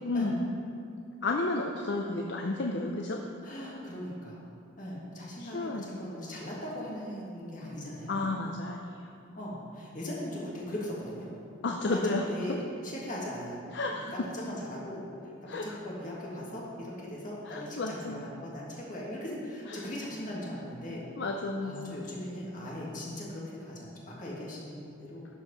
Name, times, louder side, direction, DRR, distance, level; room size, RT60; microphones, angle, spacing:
voice 1, 0.0-0.4 1.2-3.2 5.4-5.8 8.1-8.9 11.6-12.3 13.7-14.1 15.5-15.7 17.5-18.3 19.7-19.8 21.1-22.0, left 2 dB, 60° left, 2 dB, 0.5 m, -32 dB
voice 2, 3.4-4.4 4.8-8.3 9.4-11.3 11.8-15.1 15.4-21.1 21.6-25.3, left 1 dB, 40° left, -4 dB, 1.8 m, -39 dB
11.5 x 4.6 x 5.4 m, 2.5 s
head